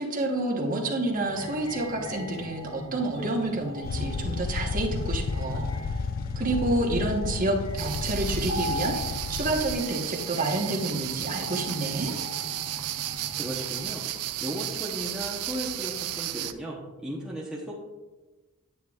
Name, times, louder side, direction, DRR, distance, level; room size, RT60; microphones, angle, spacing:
voice 1, 0.0-5.7 6.4-12.1, right 2 dB, 40° right, 0 dB, 1.1 m, -29 dB
sound 1, 1.1-13.8, left 1 dB, 75° left, 2.1 m, -40 dB
sound 2, 3.8-9.7, left 4 dB, 40° left, 0.3 m, -32 dB
sound 3, 7.8-16.5, right 13 dB, 80° right, 0.4 m, -34 dB
voice 2, 13.4-14.0 14.4-17.8, equal, 5° right, -5 dB, 0.9 m, -36 dB
9.2 x 9.1 x 2.4 m, 1.2 s
head